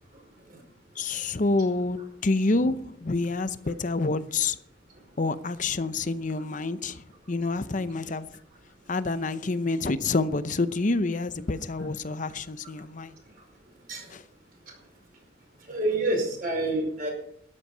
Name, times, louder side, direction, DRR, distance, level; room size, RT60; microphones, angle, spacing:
voice 1, 1.0-4.6 5.2-8.4 8.9-13.1 14.1-14.2, left 3 dB, 40° left, 0.7 m, -28 dB
voice 2, 15.7-17.1, right 2 dB, 50° right, 5.1 m, -27 dB
13.0 x 11.0 x 5.6 m
head